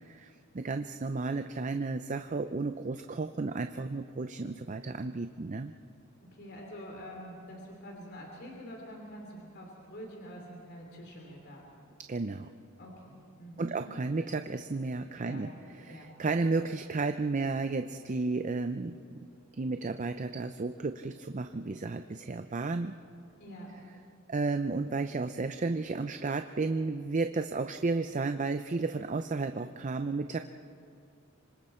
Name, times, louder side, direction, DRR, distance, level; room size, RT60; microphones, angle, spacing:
voice 1, 0.0-5.7 12.1-12.5 13.6-19.2 19.5-23.0 24.3-30.4, right 3 dB, 35° right, 8 dB, 0.5 m, -33 dB
voice 2, 6.2-11.6 12.8-13.7 15.1-15.4 15.9-16.1 23.4-23.7, equal, 50° left, 0 dB, 3.0 m, -46 dB
26.0 x 26.0 x 4.4 m, 2.4 s
head